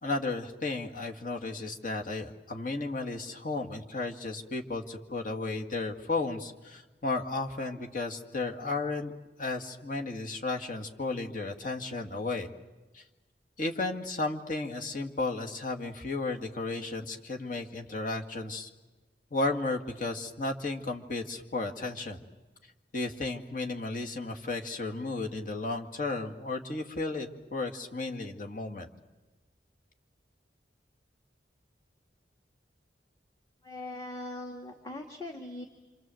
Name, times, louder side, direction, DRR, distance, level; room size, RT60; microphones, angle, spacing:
voice 1, 0.0-9.1 9.4-12.5 12.9-13.0 13.6-18.7 19.3-22.2 22.9-28.9, left 3 dB, 50° left, 2 dB, 2.1 m, -34 dB
voice 2, 33.6-35.6, left 2 dB, 20° left, 2 dB, 2.0 m, -40 dB
27.0 x 27.0 x 7.8 m, 1.2 s
head